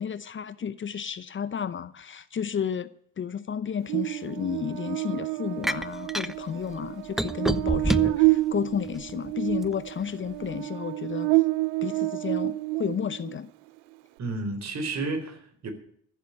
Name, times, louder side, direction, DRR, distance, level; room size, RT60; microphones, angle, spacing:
voice 1, 0.0-2.9 3.2-11.3 11.8-13.5, left 8 dB, 35° left, 0.8 m, -32 dB
Buzz, 3.9-13.3, right 21 dB, 75° right, 0.6 m, -28 dB
sound 1, 5.6-6.3 7.2-8.3 8.9-9.7, equal, ahead, 0.5 m, -27 dB
voice 2, 14.2-15.7, right 3 dB, 50° right, 4.0 m, -31 dB
14.5 x 7.6 x 8.6 m
supercardioid pair, 70°, 34 cm